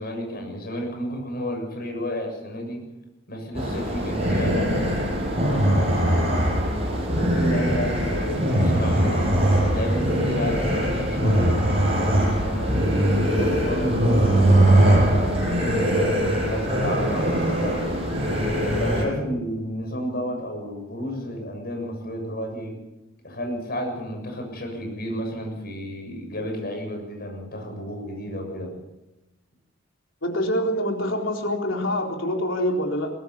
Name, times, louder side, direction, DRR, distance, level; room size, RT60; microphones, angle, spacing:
voice 1, 0.0-2.8 3.3-6.4 7.1-12.7 13.3-17.9 18.8-22.8 23.2-28.7, equal, 55° left, 3 dB, 7.2 m, -32 dB
sound 1, 3.5-19.1, right 1 dB, 30° right, 7.6 m, -21 dB
voice 2, 30.2-33.1, equal, 80° left, 2 dB, 4.1 m, -25 dB
23.0 x 18.0 x 7.1 m, 0.97 s
head